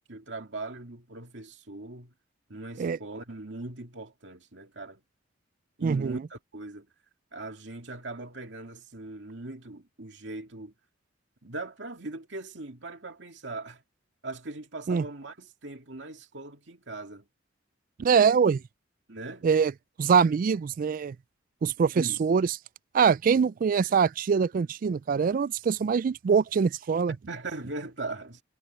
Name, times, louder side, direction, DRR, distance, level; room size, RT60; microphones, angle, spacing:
voice 1, 0.1-2.1 2.5-5.0 5.8-6.9 7.3-10.7 11.4-13.8 14.2-17.3 19.1-19.4 22.0-22.2 27.1-28.4, right 2 dB, 65° right, 2.5 m, -40 dB
voice 2, 5.8-6.2 14.9-15.0 18.0-18.6 19.4-19.7 20.0-21.2 21.6-22.5 22.9-27.2, right 6 dB, 45° right, 0.3 m, -23 dB
head